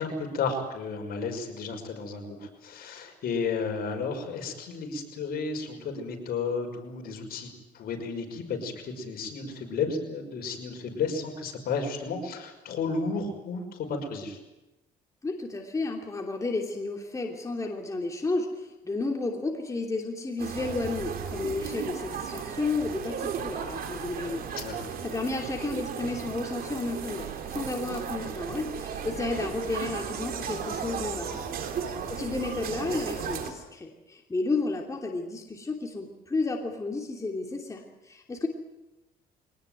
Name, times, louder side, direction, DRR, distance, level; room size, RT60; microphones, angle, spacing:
voice 1, 0.0-14.4 24.5-24.9 31.2-31.4, left 4 dB, 60° left, 3 dB, 5.8 m, -33 dB
voice 2, 15.2-24.4 25.0-31.4 32.0-38.5, left 3 dB, 20° left, 1 dB, 2.9 m, -32 dB
sound 1, 20.4-33.5, right 7 dB, 60° right, 3.4 m, -35 dB
23.0 x 19.0 x 9.4 m, 0.99 s
cardioid pair, 110°, 17 cm